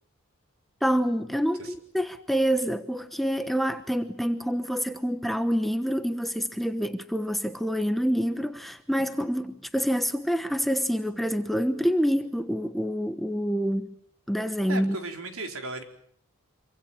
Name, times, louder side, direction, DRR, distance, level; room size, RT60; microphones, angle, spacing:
voice 1, 0.8-13.9 14.3-15.0, equal, ahead, 1.1 m, -27 dB
voice 2, 14.7-15.8, right 2 dB, 70° right, 4.4 m, -35 dB
26.5 x 25.0 x 7.2 m
head